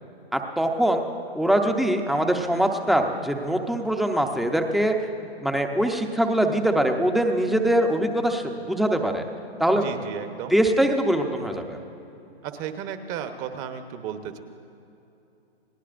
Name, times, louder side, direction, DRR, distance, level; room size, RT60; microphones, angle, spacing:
voice 1, 0.3-1.0 1.3-4.9 5.4-9.2 9.6-9.9 10.5-11.8, right 1 dB, ahead, 4 dB, 0.7 m, -23 dB
voice 2, 9.7-10.6 12.4-14.4, right 8 dB, 25° right, 8 dB, 1.0 m, -34 dB
29.5 x 18.0 x 2.5 m, 2.9 s
hypercardioid pair, 135°, 32 cm